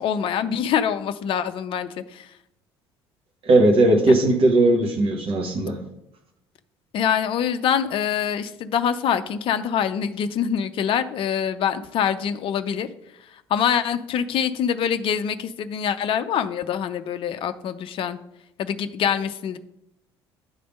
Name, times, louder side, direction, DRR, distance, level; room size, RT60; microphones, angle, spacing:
voice 1, 0.0-2.3 6.9-12.9 13.5-18.2 18.6-19.6, left 8 dB, 40° left, 10 dB, 0.5 m, -25 dB
voice 2, 3.4-5.8, right 2 dB, 45° right, 2 dB, 1.0 m, -18 dB
9.5 x 3.4 x 5.1 m, 0.83 s
figure-of-eight pair, 55°, 14 cm